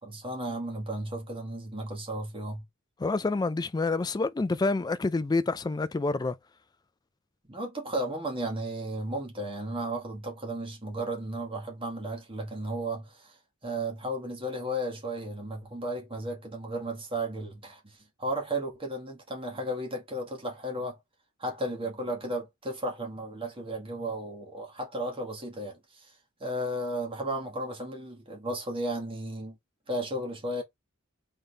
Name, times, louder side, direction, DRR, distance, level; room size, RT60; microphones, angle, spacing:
voice 1, 0.0-2.6 7.5-13.4 13.6-21.0 21.4-26.1 26.4-29.6 29.9-30.6, right 1 dB, 25° right, 1.8 m, -34 dB
voice 2, 3.0-6.4, left 3 dB, 20° left, 0.3 m, -28 dB
3.9 x 3.7 x 3.3 m
head